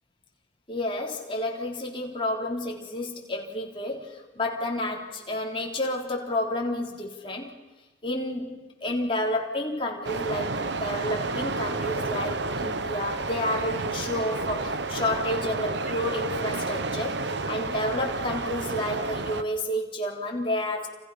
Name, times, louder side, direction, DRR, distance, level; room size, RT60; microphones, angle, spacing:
voice 1, 0.7-7.5 8.0-20.9, left 1 dB, 30° left, -1 dB, 3.5 m, -30 dB
sound 1, 10.0-19.4, right 3 dB, 70° right, 1.1 m, -30 dB
29.5 x 29.0 x 5.7 m, 1.2 s
head